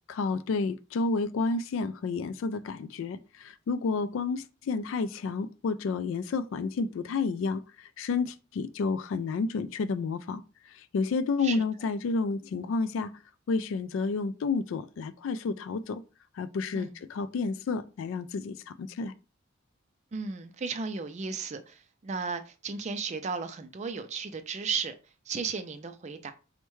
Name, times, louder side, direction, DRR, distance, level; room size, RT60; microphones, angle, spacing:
voice 1, 0.1-13.1 13.5-16.0 16.3-19.1, left 4 dB, 70° left, 0.3 m, -30 dB
voice 2, 20.1-24.9 25.3-26.3, right 5 dB, 35° right, 0.4 m, -34 dB
4.5 x 2.1 x 3.0 m
head